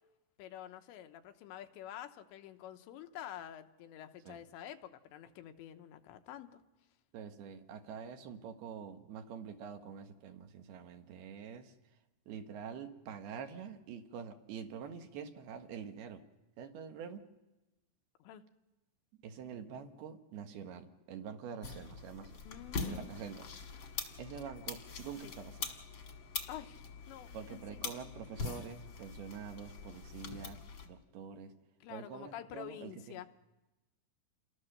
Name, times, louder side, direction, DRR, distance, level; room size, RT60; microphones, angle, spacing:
voice 1, 0.4-6.5 18.2-18.4 22.5-23.1 25.2-25.3 26.5-27.9 31.8-33.3, left 11 dB, 85° left, 8 dB, 3.2 m, -48 dB
voice 2, 7.1-11.7 12.3-16.2 16.6-17.2 19.2-22.4 22.8-23.5 24.2-25.7 27.3-31.5 31.9-33.2, right 7 dB, 70° right, 6 dB, 3.0 m, -46 dB
sound 1, 21.6-30.9, left 4 dB, 45° left, 1.7 m, -43 dB
28.0 x 21.5 x 6.7 m, 1.0 s
omnidirectional pair, 5.0 m